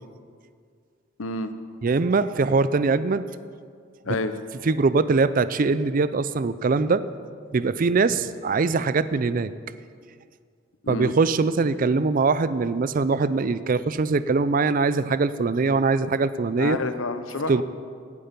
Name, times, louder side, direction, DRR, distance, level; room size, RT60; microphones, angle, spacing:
voice 1, 1.2-1.5 4.0-4.3 10.8-11.1 16.6-17.6, left 3 dB, 90° left, 10 dB, 0.8 m, -28 dB
voice 2, 1.8-3.3 4.7-7.0 7.5-9.5 10.9-16.8 17.5-17.6, right 4 dB, 45° right, 15 dB, 0.4 m, -22 dB
17.0 x 8.5 x 5.3 m, 2.1 s
head